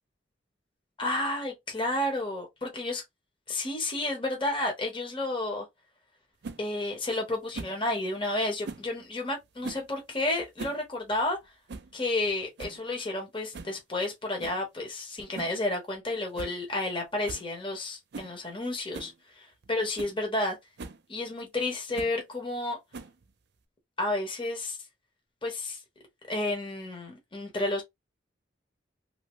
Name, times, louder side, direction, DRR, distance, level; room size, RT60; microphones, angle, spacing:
voice 1, 1.0-3.0 3.5-5.7 6.6-11.4 11.9-20.6 21.1-22.8 24.0-24.8 25.4-25.8 26.3-27.8, left 2 dB, 30° left, 1.1 m, -31 dB
sound 1, 6.4-6.6 7.5-7.8 8.6-8.9 9.6-9.9 10.4-10.8 11.1-11.2 11.7-11.9 12.3-12.4 12.6-12.8 13.5-13.8 14.4-14.6 15.3-15.6 15.9-16.0 16.3-16.6 16.8-16.9 17.3-17.5 18.1-18.3 18.9-19.1 19.6-19.7 20.0-20.2 20.8-21.0 21.9-22.2 22.9-23.3, right 3 dB, 65° right, 0.5 m, -40 dB
2.7 x 2.6 x 3.1 m
head